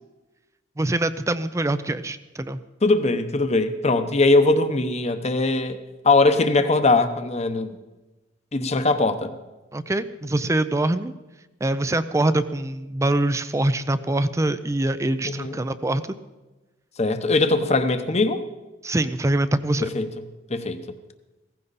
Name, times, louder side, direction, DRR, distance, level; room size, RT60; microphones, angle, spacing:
voice 1, 0.8-2.6 9.7-11.1 11.6-16.0 18.8-19.9, right 1 dB, 15° right, 13 dB, 0.4 m, -24 dB
voice 2, 2.8-5.8 6.0-7.8 8.5-9.3 15.2-15.6 17.0-18.4 19.8-20.1 20.5-20.8, left 3 dB, 35° left, 9 dB, 0.9 m, -21 dB
16.5 x 15.0 x 4.1 m, 1.1 s
head